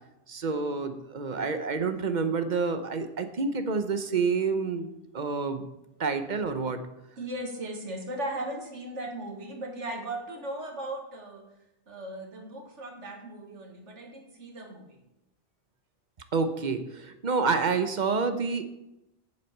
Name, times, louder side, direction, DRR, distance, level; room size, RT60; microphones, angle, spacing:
voice 1, 0.3-5.7 6.0-6.8 16.3-18.6, right 4 dB, 45° right, 9 dB, 1.0 m, -28 dB
voice 2, 7.2-11.5 11.9-15.0, right 1 dB, 90° right, 3 dB, 2.0 m, -37 dB
8.5 x 7.4 x 6.6 m, 0.89 s
omnidirectional pair, 1.2 m